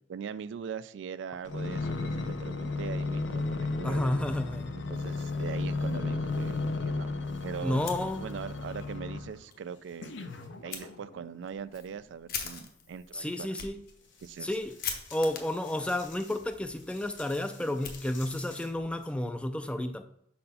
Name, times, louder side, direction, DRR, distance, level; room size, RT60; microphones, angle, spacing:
voice 1, 0.1-4.1 4.7-7.8 8.2-10.3 10.6-13.5 14.2-14.6, right 7 dB, 70° right, 16 dB, 0.3 m, -41 dB
sound 1, 1.5-9.4 10.0-11.3 11.9-12.0, left 3 dB, 70° left, 0.6 m, -34 dB
sound 2, 1.9-2.3 3.4-3.6 4.5-6.9 7.2-10.6 13.5-19.1, left 4 dB, 90° left, 1.5 m, -55 dB
voice 2, 3.8-4.7 7.6-8.3 13.1-13.8 14.4-14.7 15.1-20.1, left 1 dB, 5° left, 8 dB, 0.4 m, -31 dB
Fire, 7.7-8.6 9.0-9.1 9.5-9.6 10.7-10.8 11.4-18.6, left 6 dB, 50° left, 1.0 m, -43 dB
5.4 x 4.3 x 5.4 m, 0.72 s
head